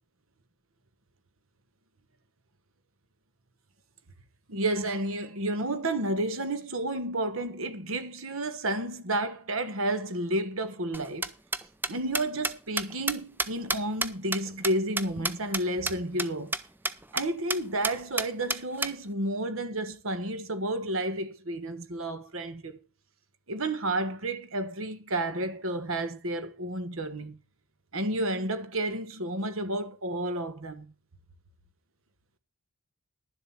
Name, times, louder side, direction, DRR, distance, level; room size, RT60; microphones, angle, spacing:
voice 1, 4.5-11.3 11.9-16.5 17.1-22.8 23.5-27.4 27.9-30.9, right 1 dB, 70° right, 1.4 m, -31 dB
sound 1, 10.9-15.6 15.9-16.0 16.2-16.3 16.5-16.6 16.8-17.2 17.5-17.6 17.8-18.9, right 2 dB, 10° right, 0.6 m, -29 dB
11.5 x 7.6 x 5.8 m
head